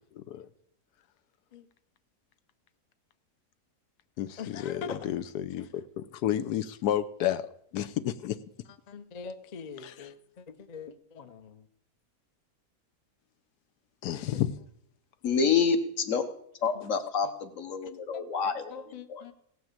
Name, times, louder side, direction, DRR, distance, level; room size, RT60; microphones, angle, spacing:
voice 1, 0.2-0.5 4.2-8.4 9.8-9.9 14.0-14.5, left 11 dB, 90° left, 12 dB, 1.2 m, -31 dB
voice 2, 4.4-5.1 8.9-11.7 16.6-16.8 18.1-19.3, left 5 dB, 40° left, 11 dB, 0.5 m, -43 dB
voice 3, 15.2-16.3 16.6-18.8 19.1-19.3, left 6 dB, 60° left, 8 dB, 1.5 m, -28 dB
17.0 x 6.1 x 7.3 m, 0.71 s
omnidirectional pair, 1.6 m